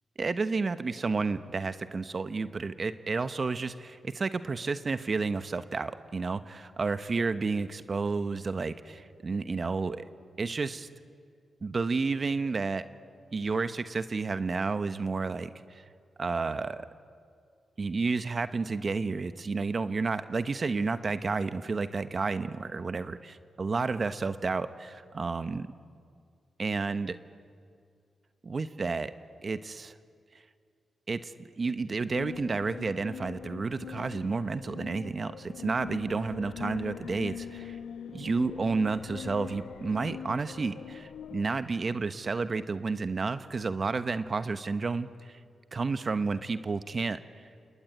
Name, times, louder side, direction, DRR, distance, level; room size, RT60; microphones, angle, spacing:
voice 1, 0.2-10.0 10.4-10.9 11.6-12.9 13.3-15.8 16.2-16.9 17.8-25.7 26.6-27.2 28.4-29.1 29.4-29.9 31.1-37.8 38.1-45.4 45.7-47.2, right 4 dB, 50° right, 11 dB, 1.2 m, -31 dB
sound 1, 32.1-41.5, left 8 dB, 85° left, 1.0 m, -42 dB
28.0 x 20.5 x 9.1 m, 2.2 s
supercardioid pair, 50°, 0 cm